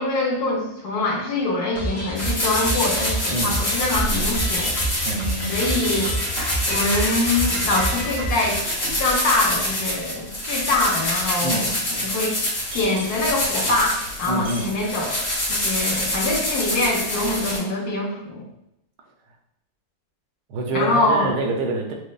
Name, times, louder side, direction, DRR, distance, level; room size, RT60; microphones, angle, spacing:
voice 1, 0.0-4.7 5.5-6.1 6.7-8.6 9.0-12.4 12.7-15.2 15.5-18.4 20.7-21.3, left 2 dB, 70° left, -1 dB, 1.3 m, -24 dB
sound 1, 1.7-8.6, right 1 dB, 20° left, 0.4 m, -29 dB
sound 2, 2.1-17.6, left 1 dB, 50° left, 2.0 m, -26 dB
voice 2, 5.0-5.6 11.4-11.6 14.2-14.7 20.5-21.9, right 2 dB, 75° right, 2 dB, 1.2 m, -26 dB
sound 3, 5.9-6.3 9.1-9.6 12.7-13.2 14.5-14.7 15.7-16.1, right 1 dB, 60° right, 0.8 m, -35 dB
6.2 x 2.1 x 2.3 m, 0.84 s
omnidirectional pair, 1.8 m